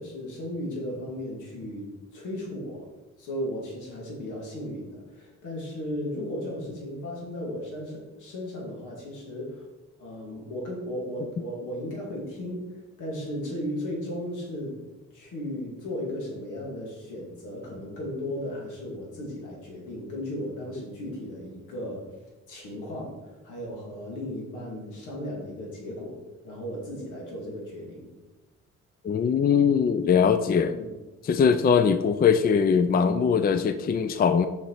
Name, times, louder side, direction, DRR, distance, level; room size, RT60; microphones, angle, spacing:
voice 1, 0.0-2.9 3.2-9.7 10.0-14.8 15.1-22.0 22.5-23.1 23.4-26.2 26.4-28.1 30.7-30.9, left 1 dB, 85° left, -2 dB, 2.5 m, -35 dB
voice 2, 29.0-30.8 31.2-34.5, left 6 dB, 30° left, 10 dB, 0.4 m, -21 dB
6.9 x 5.3 x 4.8 m, 1.1 s
cardioid pair, 90°, 30 cm